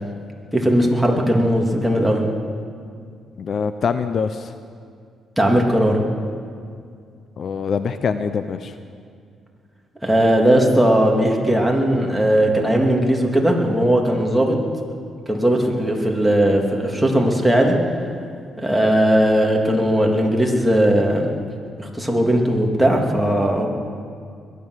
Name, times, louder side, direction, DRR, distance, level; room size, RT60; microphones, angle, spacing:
voice 1, 0.5-2.2 5.4-6.0 10.0-14.6 15.3-17.8 18.6-21.3 21.8-23.7, right 1 dB, ahead, 0 dB, 2.7 m, -18 dB
voice 2, 3.4-4.5 7.4-8.7, left 6 dB, 55° left, 11 dB, 0.6 m, -24 dB
21.5 x 10.5 x 6.4 m, 2.2 s
cardioid pair, 90°, 0 cm